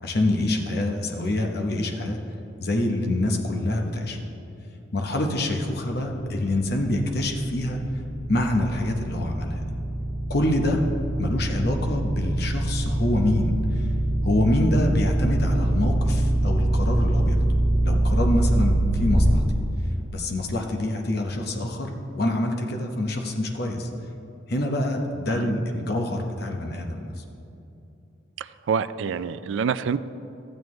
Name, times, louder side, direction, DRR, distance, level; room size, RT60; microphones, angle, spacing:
voice 1, 0.0-2.2 2.6-4.2 4.9-7.8 8.3-9.7 10.3-10.8 11.2-13.9 14.2-17.4 17.8-19.4 20.1-23.9 24.5-27.2, left 1 dB, 55° left, 3 dB, 0.9 m, -26 dB
sound 1, 6.3-19.3, right 1 dB, 20° right, 2.4 m, -24 dB
voice 2, 28.4-30.0, right 6 dB, 70° right, 14 dB, 0.3 m, -27 dB
13.0 x 8.9 x 3.1 m, 2.8 s
head